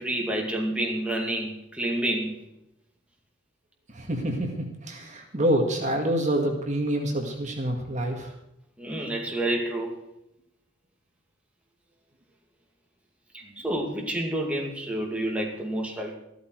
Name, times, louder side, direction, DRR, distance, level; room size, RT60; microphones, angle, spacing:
voice 1, 0.0-2.3 5.6-5.7 8.8-10.0 13.3-16.1, right 1 dB, 5° right, 0 dB, 2.5 m, -29 dB
voice 2, 3.9-8.3, right 1 dB, 40° right, 2 dB, 2.1 m, -27 dB
14.0 x 13.5 x 4.7 m, 0.84 s
head